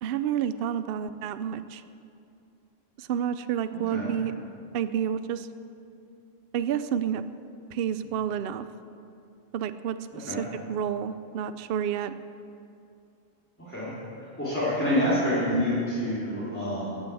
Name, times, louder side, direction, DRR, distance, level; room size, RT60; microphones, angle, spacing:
voice 1, 0.0-1.8 3.0-4.5 4.7-5.5 6.5-7.2 7.7-8.7 9.5-12.1, right 9 dB, 65° right, 12 dB, 0.7 m, -30 dB
voice 2, 13.7-17.0, left 1 dB, 10° left, -12 dB, 3.4 m, -27 dB
16.0 x 8.7 x 7.0 m, 2.6 s
omnidirectional pair, 1.1 m